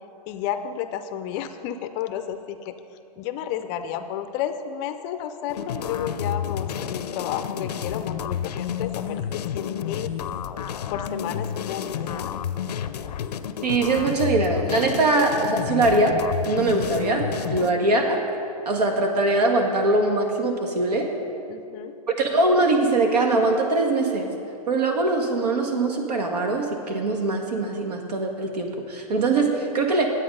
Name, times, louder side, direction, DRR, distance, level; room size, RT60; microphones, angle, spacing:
voice 1, 0.3-2.7 3.2-9.3 9.5-10.1 10.9-12.3 21.5-21.9, left 9 dB, 30° left, 9 dB, 0.4 m, -32 dB
sound 1, 5.5-17.7, left 8 dB, 85° left, 0.6 m, -30 dB
voice 2, 13.6-16.2 16.5-18.2 18.6-21.1 22.1-24.3 24.7-30.1, right 2 dB, 80° right, 3 dB, 1.7 m, -22 dB
10.5 x 8.3 x 5.4 m, 2.6 s
hypercardioid pair, 145°, 20 cm